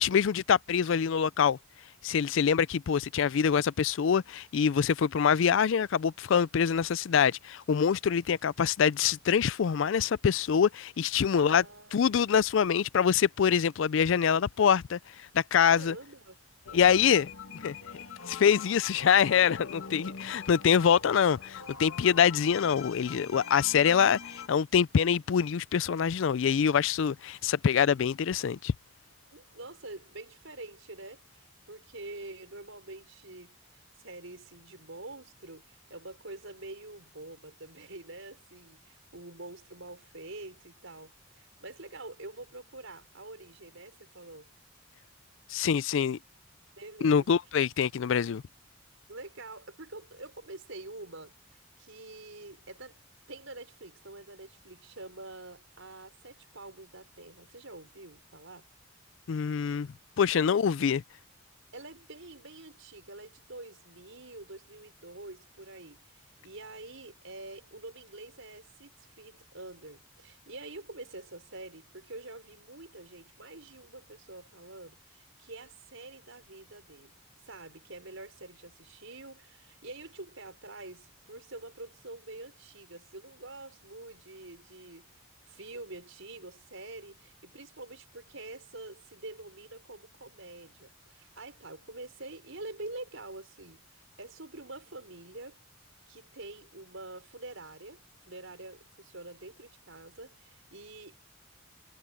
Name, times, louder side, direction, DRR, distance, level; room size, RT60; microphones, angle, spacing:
voice 1, 0.0-1.6 2.0-11.6 11.9-16.0 16.7-17.8 18.3-28.7 45.5-46.2 47.0-48.4 59.3-59.9 60.2-61.0, left 7 dB, 65° left, 0.4 m, -25 dB
voice 2, 11.3-12.1 15.7-16.4 16.7-17.2 29.3-44.5 46.8-47.3 49.1-53.0 53.3-58.7 60.3-60.6 61.7-95.6 96.1-101.2, right 2 dB, 70° right, 5.2 m, -46 dB
sound 1, 16.6-24.5, left 6 dB, 90° left, 2.0 m, -43 dB
head